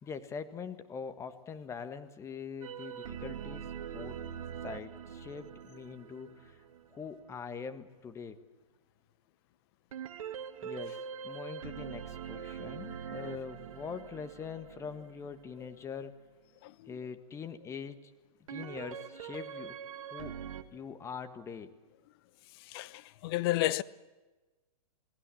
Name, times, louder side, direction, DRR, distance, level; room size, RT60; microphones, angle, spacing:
voice 1, 0.0-3.7 3.9-4.2 4.6-6.6 6.9-8.4 10.6-16.2 16.9-18.1 18.5-19.7 20.1-20.4 20.7-21.7, left 6 dB, 15° left, 1.6 m, -43 dB
sound 1, 2.6-7.2 9.9-15.9 18.5-20.6, right 8 dB, 65° right, 2.0 m, -43 dB
voice 2, 16.6-16.9 22.7-23.8, left 16 dB, 40° left, 0.9 m, -32 dB
28.5 x 18.5 x 7.7 m
hypercardioid pair, 140°, 19 cm